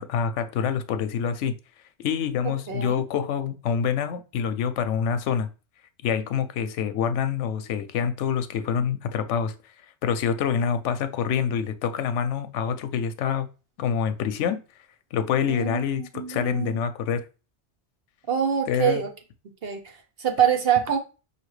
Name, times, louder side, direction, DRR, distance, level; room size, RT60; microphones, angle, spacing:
voice 1, 0.0-1.5 2.0-5.5 6.0-9.5 10.0-13.5 13.8-14.6 15.1-17.2 18.7-19.0, left 7 dB, 85° left, 0.9 m, -26 dB
voice 2, 2.7-3.0 15.5-15.8 16.1-16.7 18.3-19.1 19.6-21.0, right 8 dB, 60° right, 1.0 m, -25 dB
5.7 x 2.7 x 3.1 m
omnidirectional pair, 1.2 m